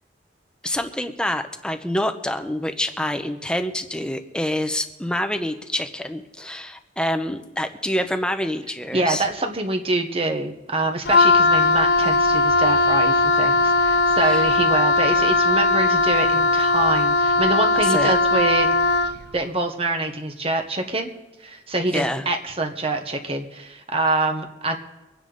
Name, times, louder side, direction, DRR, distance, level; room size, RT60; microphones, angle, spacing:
voice 1, 0.6-9.3 14.2-14.4 17.8-18.1 21.9-22.2, left 1 dB, 5° left, 7 dB, 0.8 m, -26 dB
voice 2, 8.9-18.7 19.3-21.1 21.4-24.8, right 2 dB, 30° right, 4 dB, 1.2 m, -25 dB
Wind instrument woodwind instrument, 11.0-19.2, left 3 dB, 60° left, 0.7 m, -19 dB
24.5 x 9.9 x 4.0 m, 1.1 s
head